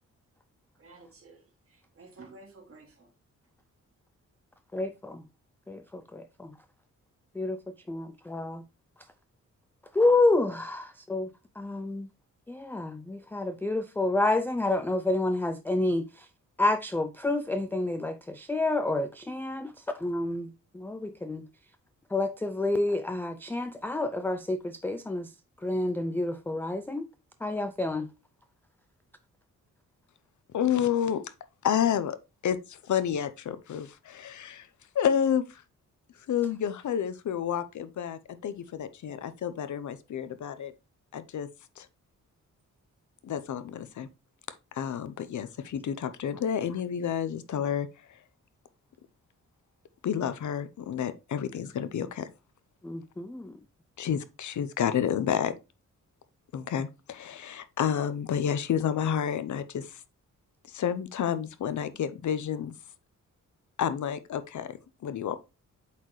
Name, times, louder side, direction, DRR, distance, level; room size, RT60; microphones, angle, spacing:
voice 1, 0.8-1.4 1.7-3.1, right 3 dB, 45° right, 2.2 m, -52 dB
voice 2, 4.7-5.2 5.7-6.5 7.4-7.6 7.9-8.6 9.9-11.3 11.6-12.1 12.5-16.3 16.6-19.7 20.0-21.4 22.1-25.3 25.6-27.1 27.4-28.1 52.8-53.6, left 2 dB, 5° left, 0.3 m, -29 dB
voice 3, 30.5-31.2 31.6-32.2 32.4-34.7 34.9-35.6 36.3-40.7 41.1-41.5 41.8-41.9 43.2-44.1 44.7-48.2 50.0-52.3 54.0-55.6 56.5-60.0 60.7-62.7 63.8-65.4, left 8 dB, 70° left, 0.7 m, -30 dB
8.2 x 4.3 x 3.1 m
wide cardioid pair, 160°, 31 cm